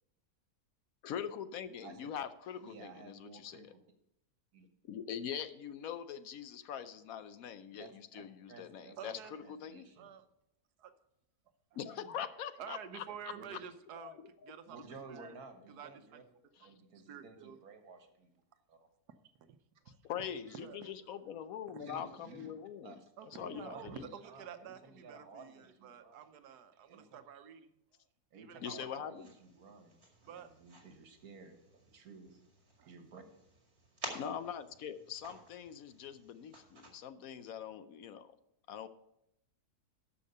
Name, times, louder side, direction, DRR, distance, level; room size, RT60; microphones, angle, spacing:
voice 1, 1.0-3.7 4.8-9.2 9.6-9.9 11.8-13.0 14.0-14.5 20.0-23.0 23.2-24.0 28.6-29.3 34.1-38.3 38.7-38.9, left 8 dB, 70° left, 12 dB, 1.0 m, -43 dB
voice 2, 2.6-3.8 4.5-4.7 7.7-8.2 8.5-10.1 13.1-13.6 14.7-16.2 16.6-18.3 18.7-18.8 20.5-20.6 21.8-22.5 22.8-23.1 23.5-26.3 26.9-27.2 28.3-30.0 30.3-32.4 32.8-33.2, right 4 dB, 70° right, 6 dB, 1.8 m, -54 dB
voice 3, 9.0-9.3 10.0-10.2 10.8-10.9 11.7-12.1 12.6-14.8 15.1-15.4 15.7-16.2 17.1-17.6 19.5-19.6 19.8-20.0 20.5-20.9 21.7-21.8 23.2-27.7 28.3-29.1 30.2-30.5 32.8-32.9, right 8 dB, 85° right, 10 dB, 1.3 m, -50 dB
sound 1, 29.1-36.9, right 2 dB, 40° right, 2.4 m, -52 dB
13.0 x 5.5 x 5.4 m, 0.79 s
omnidirectional pair, 1.6 m